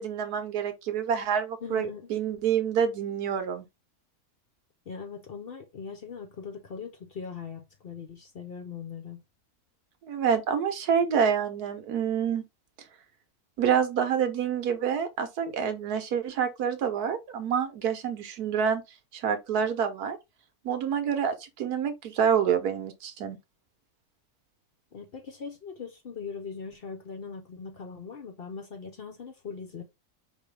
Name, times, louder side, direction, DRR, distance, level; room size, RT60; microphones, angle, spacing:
voice 1, 0.0-3.7 10.0-12.4 13.6-18.8 19.1-20.2 20.6-23.4, right 7 dB, 85° right, 1.4 m, -27 dB
voice 2, 1.6-2.1 4.9-9.2 24.9-29.8, left 5 dB, 50° left, 0.7 m, -40 dB
4.8 x 3.1 x 3.2 m
omnidirectional pair, 1.6 m